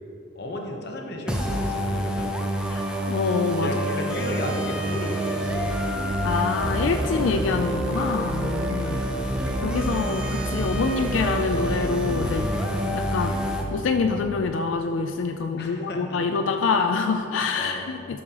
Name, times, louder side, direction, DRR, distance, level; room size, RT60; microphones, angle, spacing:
voice 1, 0.3-2.3 3.6-5.6 8.8-9.3 15.6-16.4 17.3-17.8, left 1 dB, 55° left, 1 dB, 1.0 m, -34 dB
sound 1, 1.3-13.6, right 1 dB, 5° right, 0.6 m, -28 dB
voice 2, 2.7-3.7 6.2-9.0 9.6-12.5 12.9-13.3 13.7-18.2, left 4 dB, 75° left, 6 dB, 0.4 m, -26 dB
Brass instrument, 4.0-9.8, equal, 15° left, 1.2 m, -41 dB
sound 2, 5.4-13.9, right 1 dB, 60° right, 1.6 m, -34 dB
12.5 x 6.3 x 3.0 m, 2.7 s
head